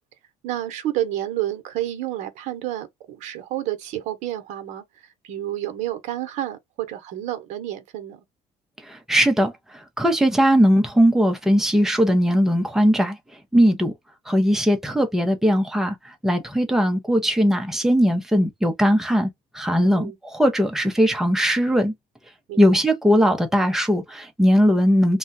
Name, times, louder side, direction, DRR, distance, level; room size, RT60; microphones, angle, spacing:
voice 1, 0.4-8.2 19.9-20.2 22.5-22.8, right 13 dB, 55° right, 0.9 m, -30 dB
voice 2, 8.8-13.2 13.5-13.9 14.3-21.9 22.6-25.2, equal, 5° right, 0.7 m, -19 dB
2.3 x 2.2 x 3.9 m
cardioid pair, 150°, 14 cm